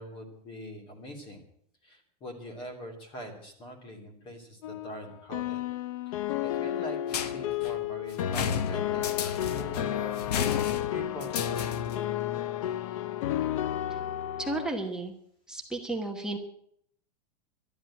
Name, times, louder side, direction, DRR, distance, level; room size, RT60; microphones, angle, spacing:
voice 1, 0.0-1.4 1.8-5.6 6.1-10.3 10.9-11.7, equal, 25° left, 4 dB, 3.0 m, -43 dB
sound 1, 4.6-14.7, left 12 dB, 55° left, 0.7 m, -32 dB
sound 2, 7.1-12.1, left 8 dB, 75° left, 1.2 m, -34 dB
voice 2, 14.4-15.1 15.5-16.4, right 2 dB, 5° right, 1 dB, 1.1 m, -33 dB
12.5 x 11.0 x 8.8 m, 0.66 s
supercardioid pair, 175°, 20 cm